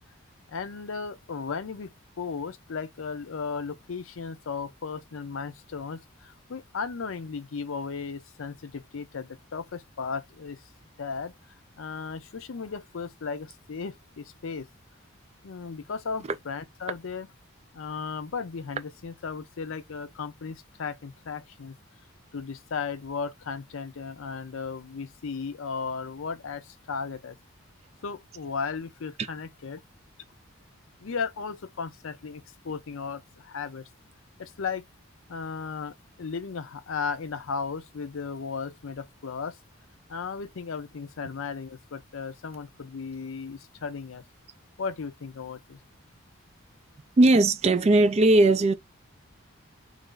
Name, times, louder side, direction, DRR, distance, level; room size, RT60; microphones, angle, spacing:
voice 1, 0.5-1.9 2.2-10.6 11.0-11.3 11.8-14.7 15.4-17.3 17.7-21.7 22.3-27.3 28.0-29.8 31.0-33.8 34.4-34.8 35.3-39.5 40.1-44.2 44.8-45.8, left 5 dB, 70° left, 0.5 m, -35 dB
voice 2, 47.2-48.7, right 2 dB, 30° right, 0.3 m, -19 dB
3.2 x 2.5 x 3.7 m
head